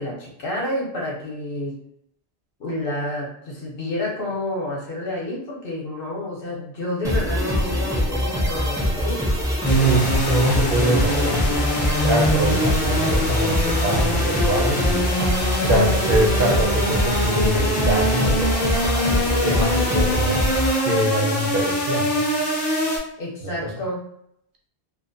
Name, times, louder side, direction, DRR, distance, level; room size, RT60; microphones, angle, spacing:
voice 1, 0.0-1.7 2.6-9.2 12.4-13.3 23.2-24.0, left 1 dB, 60° left, -3 dB, 0.9 m, -29 dB
sound 1, 7.0-20.8, equal, 5° right, 0.3 m, -23 dB
sound 2, 9.6-23.0, equal, 45° left, 0.7 m, -23 dB
voice 2, 9.7-11.6 12.0-15.1 15.6-18.6 19.4-20.5 20.8-22.3 23.4-23.7, right 1 dB, 65° right, 0 dB, 0.7 m, -24 dB
2.4 x 2.1 x 2.6 m, 0.71 s
omnidirectional pair, 1.1 m